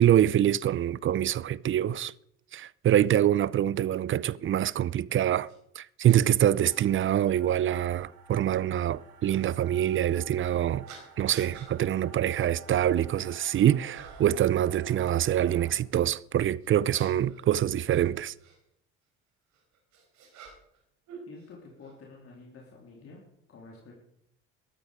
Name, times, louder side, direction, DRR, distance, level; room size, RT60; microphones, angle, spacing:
voice 1, 0.0-2.1 2.5-5.5 5.8-10.8 11.2-18.3, right 11 dB, 45° right, 0.6 m, -25 dB
sound 1, 5.5-5.6 6.0-6.2 7.1-7.2 9.2-9.4 10.9-11.7 12.3-12.5 12.9-13.5 13.9-14.4 16.6-18.6 19.5-20.8 21.1-21.9, right 6 dB, 70° right, 4.2 m, -49 dB
sound 2, 6.6-15.7, right 6 dB, 85° right, 2.0 m, -51 dB
voice 2, 21.3-23.2 23.5-23.9, left 3 dB, 50° left, 3.7 m, -49 dB
13.5 x 12.5 x 5.1 m
supercardioid pair, 70°, 29 cm